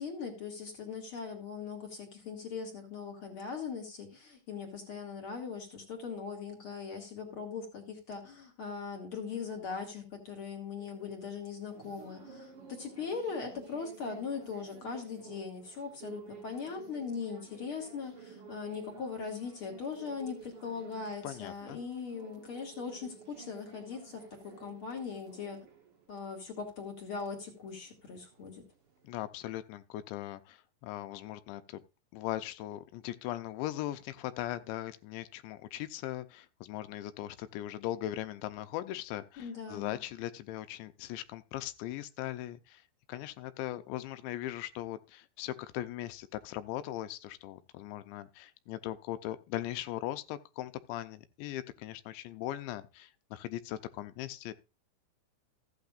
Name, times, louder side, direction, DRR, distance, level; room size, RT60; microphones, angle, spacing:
voice 1, 0.0-25.7 26.1-28.6 39.4-40.0, left 5 dB, 40° left, 2.2 m, -40 dB
sound 1, 10.8-29.2, right 6 dB, 60° right, 1.5 m, -53 dB
voice 2, 21.2-21.8 29.0-31.8 32.1-42.8 43.1-54.5, left 14 dB, 85° left, 2.9 m, -39 dB
14.5 x 8.7 x 2.5 m
omnidirectional pair, 5.0 m